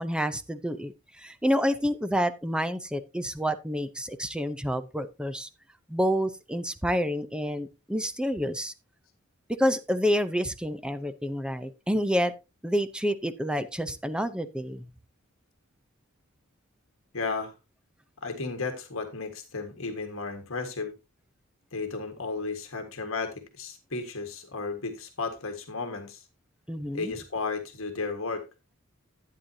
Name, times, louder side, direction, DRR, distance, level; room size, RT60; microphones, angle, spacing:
voice 1, 0.0-5.5 5.9-8.7 9.5-12.3 12.6-14.9 26.7-27.1, equal, 5° right, 10 dB, 0.6 m, -28 dB
voice 2, 17.1-17.5 18.2-20.9 21.7-26.2 26.9-28.4, left 4 dB, 70° left, 5 dB, 1.6 m, -34 dB
11.5 x 9.1 x 2.7 m, 0.26 s
head